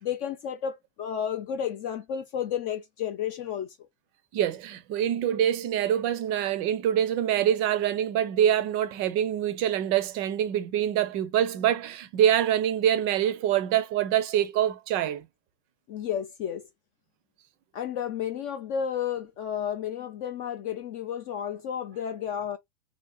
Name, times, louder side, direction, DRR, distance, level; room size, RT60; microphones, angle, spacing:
voice 1, 0.0-3.8 15.9-16.7 17.7-22.6, left 8 dB, 25° left, 0.3 m, -32 dB
voice 2, 4.3-15.3, right 10 dB, 35° right, 0.5 m, -25 dB
3.3 x 2.7 x 3.8 m
hypercardioid pair, 130°, 38 cm